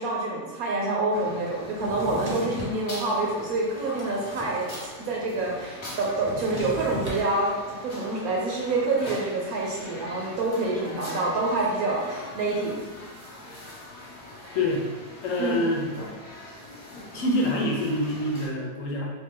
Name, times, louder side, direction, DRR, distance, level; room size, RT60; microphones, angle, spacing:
voice 1, 0.0-4.6 5.0-7.5 7.8-12.8 15.4-15.6, right 2 dB, 70° right, -3 dB, 1.0 m, -27 dB
At The Cash Register, 1.1-18.5, left 1 dB, 45° left, 1.1 m, -42 dB
Drawer open or close, 1.8-2.8 3.4-4.9 5.1-5.2 5.5-7.2, equal, 35° right, 0.3 m, -37 dB
voice 2, 14.5-14.8 15.2-15.9 17.1-19.1, left 1 dB, 60° left, -1 dB, 0.9 m, -26 dB
2.9 x 2.8 x 3.7 m, 1.3 s
omnidirectional pair, 1.8 m